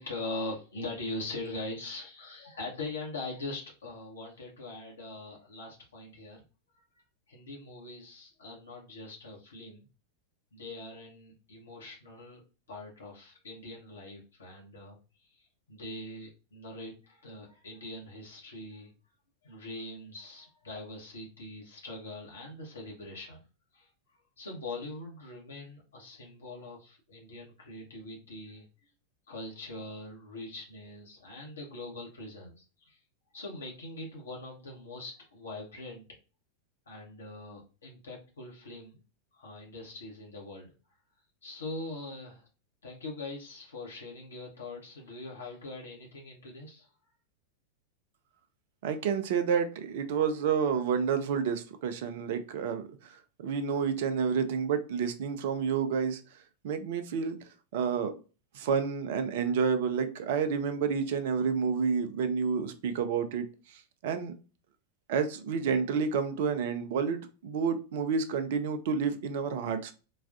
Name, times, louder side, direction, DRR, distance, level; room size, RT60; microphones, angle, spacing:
voice 1, 0.0-6.4 6.8-6.9 7.3-9.9 10.5-12.4 12.7-18.9 19.4-23.4 23.7-23.9 24.4-28.6 29.3-33.0 33.3-36.0 36.9-39.0 39.3-40.7 41.4-42.5 42.8-46.9, left 2 dB, 70° left, 0.9 m, -42 dB
voice 2, 48.8-56.2 56.6-58.2 58.5-64.3 65.1-69.9, right 6 dB, 55° right, 0.5 m, -30 dB
4.0 x 2.3 x 2.4 m
figure-of-eight pair, 90°, 0 cm